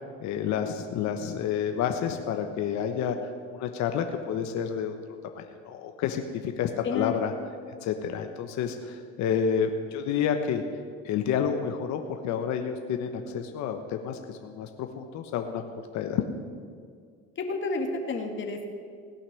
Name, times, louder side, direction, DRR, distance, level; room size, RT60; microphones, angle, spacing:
voice 1, 0.2-3.2 3.5-4.9 5.3-7.3 7.8-10.6 11.0-15.6 15.9-16.2, left 8 dB, 55° left, 6 dB, 1.2 m, -29 dB
voice 2, 6.8-7.2 17.4-18.7, left 3 dB, 35° left, 3 dB, 2.1 m, -30 dB
17.5 x 5.9 x 9.8 m, 2.1 s
supercardioid pair, 90°, 33 cm